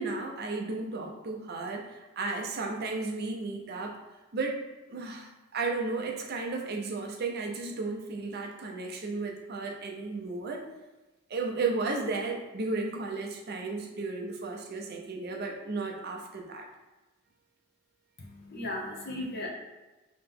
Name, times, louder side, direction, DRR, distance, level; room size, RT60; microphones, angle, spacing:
voice 1, 0.0-4.0 4.3-4.6 4.9-10.7 11.3-16.7, right 3 dB, 50° right, 2 dB, 0.5 m, -34 dB
voice 2, 18.2-19.5, left 1 dB, 50° left, -2 dB, 0.8 m, -36 dB
2.9 x 2.9 x 3.6 m, 1.1 s
head